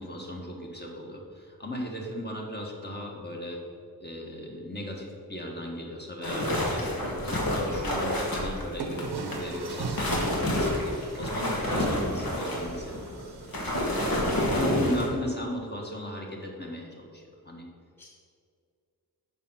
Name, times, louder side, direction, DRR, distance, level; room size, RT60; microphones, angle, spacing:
voice 1, 0.0-3.6 4.0-13.3 14.1-17.6, equal, 25° left, -1 dB, 1.5 m, -36 dB
sound 1, 6.2-9.4 9.8-15.1, left 1 dB, 65° left, 1.8 m, -28 dB
sound 2, 8.0-8.1 8.8-14.4, right 4 dB, 85° right, 0.9 m, -41 dB
voice 2, 11.6-12.1 13.9-14.3 18.0-18.1, equal, 5° left, -2 dB, 0.8 m, -40 dB
7.1 x 5.4 x 5.8 m, 2.2 s
wide cardioid pair, 85°, 38 cm